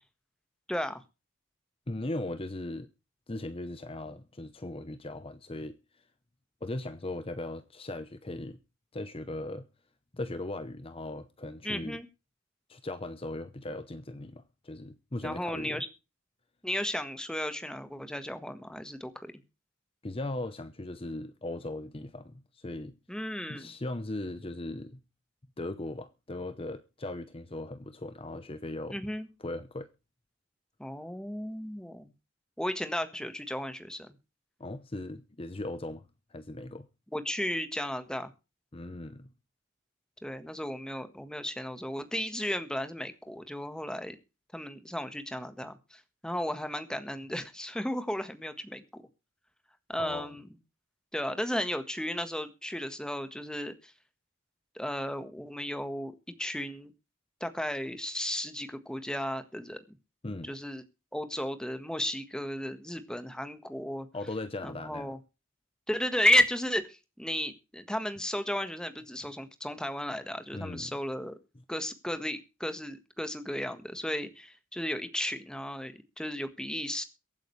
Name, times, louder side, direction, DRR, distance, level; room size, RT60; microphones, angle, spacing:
voice 1, 0.7-1.0 11.6-12.1 15.2-15.9 16.6-19.3 23.1-23.7 28.9-29.3 30.8-32.1 32.6-34.1 37.1-38.3 40.2-44.2 44.5-49.0 49.9-50.4 51.1-53.9 54.7-56.1 56.4-56.9 57.4-59.8 60.4-60.8 61.1-64.1 64.6-65.2 65.9-71.3 71.7-77.0, left 1 dB, 5° left, 1.5 m, -34 dB
voice 2, 1.9-2.9 3.3-5.8 6.6-8.6 8.9-9.7 10.1-12.0 12.7-15.8 20.0-23.0 23.5-25.0 25.6-29.0 29.4-29.9 34.6-36.9 38.7-39.3 50.0-50.4 60.2-60.5 64.1-65.1 70.5-70.9, left 2 dB, 30° left, 0.9 m, -38 dB
23.0 x 9.0 x 3.3 m
head